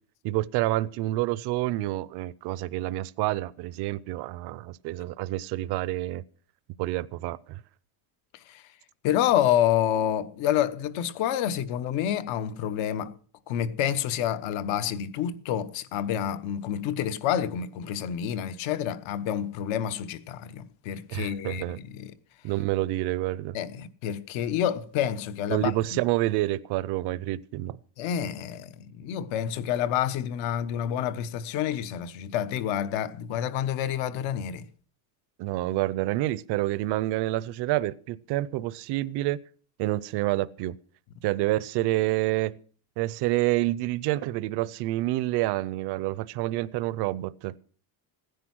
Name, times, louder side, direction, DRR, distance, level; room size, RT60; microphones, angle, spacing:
voice 1, 0.2-6.2 6.8-7.6 21.1-21.8 22.4-23.6 25.5-27.8 35.4-39.4 39.8-40.7 41.2-42.5 43.0-47.5, right 17 dB, 55° right, 0.6 m, -28 dB
voice 2, 9.0-13.1 13.5-22.1 23.5-26.0 28.0-34.6, left 10 dB, 65° left, 1.2 m, -28 dB
16.0 x 10.5 x 6.1 m
cardioid pair, 175°, 49 cm